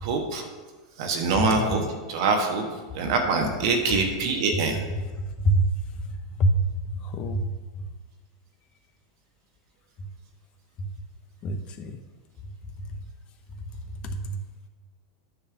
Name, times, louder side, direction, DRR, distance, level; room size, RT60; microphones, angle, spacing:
voice 1, 0.0-0.4 1.0-2.6 2.9-4.8, right 3 dB, 70° right, 3 dB, 1.2 m, -24 dB
voice 2, 1.4-1.8 4.5-4.6 5.0-5.7 6.4-6.6 7.0-7.5 10.8-10.9 11.4-12.0 14.0-14.4, right 1 dB, 40° left, 7 dB, 0.8 m, -25 dB
9.6 x 3.4 x 6.9 m, 1.3 s
hypercardioid pair, 110°, 3 cm